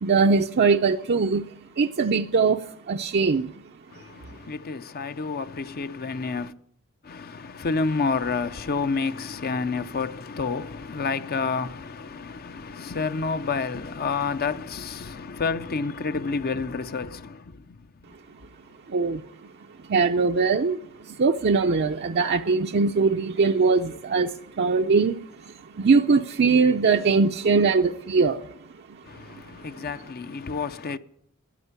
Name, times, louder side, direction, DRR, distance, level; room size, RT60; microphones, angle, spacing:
voice 1, 0.0-1.5 1.8-3.5 18.9-19.2 19.9-28.5, right 4 dB, 50° right, 0.5 m, -21 dB
voice 2, 3.9-6.5 7.0-18.1 29.0-31.0, left 4 dB, 45° left, 0.6 m, -29 dB
13.5 x 10.0 x 9.6 m
head